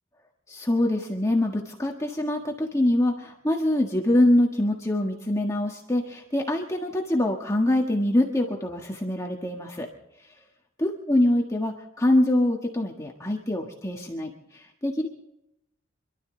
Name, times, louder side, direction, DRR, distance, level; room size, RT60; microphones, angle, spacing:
voice 1, 0.5-9.9 10.8-15.1, left 1 dB, 15° left, 0 dB, 1.5 m, -24 dB
26.5 x 12.5 x 3.9 m, 0.84 s
head